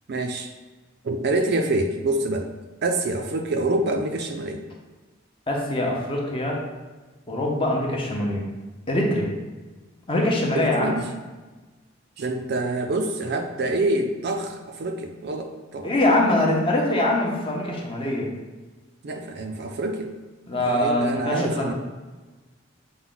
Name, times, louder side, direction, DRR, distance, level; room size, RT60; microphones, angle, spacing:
voice 1, 0.1-0.5 1.0-2.5 2.8-4.6 10.5-11.1 12.2-15.9 19.0-20.1 20.5-21.7, right 2 dB, 55° right, 5 dB, 0.4 m, -26 dB
voice 2, 5.5-6.6 7.3-8.4 8.9-9.3 10.1-11.0 15.8-18.3 20.5-21.7, left 1 dB, 30° left, -1 dB, 0.7 m, -23 dB
5.8 x 2.2 x 3.8 m, 1.2 s
head